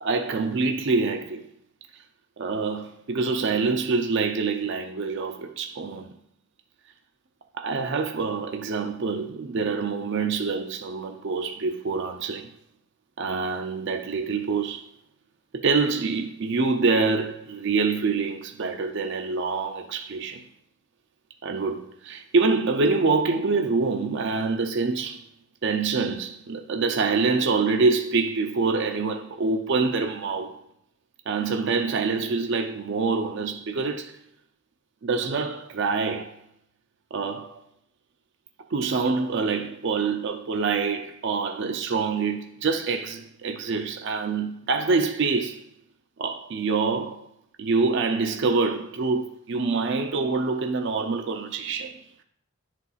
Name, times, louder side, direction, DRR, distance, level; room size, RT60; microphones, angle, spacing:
voice 1, 0.0-1.4 2.4-6.1 7.6-12.5 13.2-14.9 15.6-20.4 21.4-25.2 25.6-30.5 31.3-34.2 35.0-36.4 37.1-37.6 38.7-45.7 46.2-47.3 47.6-52.0, right 4 dB, 60° right, 0.5 m, -26 dB
10.5 x 4.1 x 2.3 m
head